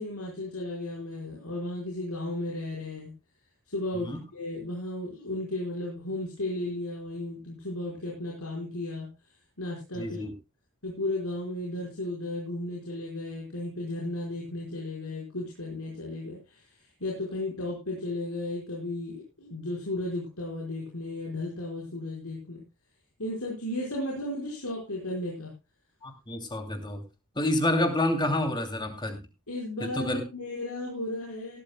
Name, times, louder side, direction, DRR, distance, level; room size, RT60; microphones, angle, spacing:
voice 1, 0.0-3.1 3.7-9.1 9.6-10.2 10.8-16.7 17.0-22.6 23.2-25.5 29.5-31.6, left 1 dB, 75° left, -3 dB, 5.1 m, -34 dB
voice 2, 10.0-10.3 26.0-27.0 27.3-29.2 30.0-30.2, left 1 dB, 20° left, 6 dB, 2.8 m, -28 dB
19.0 x 13.0 x 2.3 m, 0.26 s
head